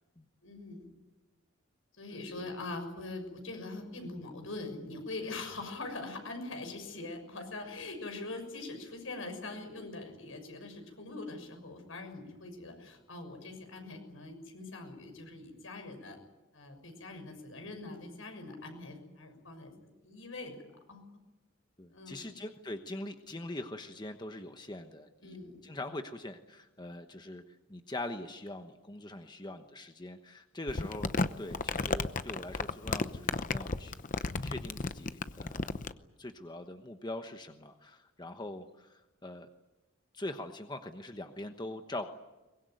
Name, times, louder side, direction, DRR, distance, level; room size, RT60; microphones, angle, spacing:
voice 1, 0.4-0.9 2.0-16.2 16.5-19.7 20.0-20.5 20.9-21.1 21.9-22.3 25.2-25.6, left 2 dB, 80° left, 5 dB, 6.6 m, -43 dB
voice 2, 2.1-2.5 21.8-25.4 25.6-35.7 36.2-39.5 40.1-42.1, left 1 dB, 20° left, 7 dB, 1.1 m, -43 dB
Crumpling crinkling, 30.7-35.9, left 3 dB, 40° left, 0.8 m, -33 dB
23.0 x 21.5 x 9.4 m, 1.1 s
head